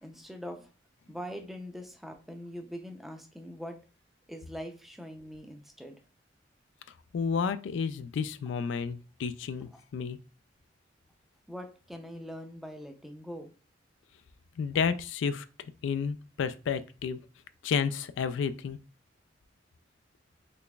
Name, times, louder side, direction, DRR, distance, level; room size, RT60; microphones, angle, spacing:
voice 1, 0.0-0.7 1.1-3.8 4.3-6.0 11.5-13.5, equal, ahead, 0.5 m, -42 dB
voice 2, 7.1-10.2 14.6-15.5 15.8-17.2 17.6-18.8, left 6 dB, 75° left, 0.3 m, -31 dB
4.1 x 3.2 x 2.3 m
head